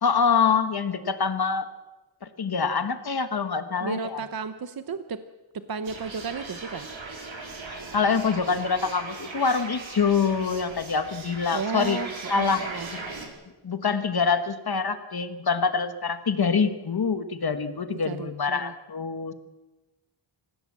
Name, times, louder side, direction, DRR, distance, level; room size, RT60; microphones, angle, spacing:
voice 1, 0.0-1.6 2.4-4.2 7.6-12.0 12.3-12.6 13.6-19.3, left 5 dB, 50° left, 9 dB, 1.5 m, -25 dB
voice 2, 3.8-5.2 5.5-6.9 11.5-12.9 18.0-18.7, right 5 dB, 45° right, 10 dB, 0.9 m, -33 dB
sound 1, 5.8-13.3, right 3 dB, 70° right, 4.2 m, -39 dB
26.5 x 16.0 x 7.5 m, 1.1 s
wide cardioid pair, 145°, 48 cm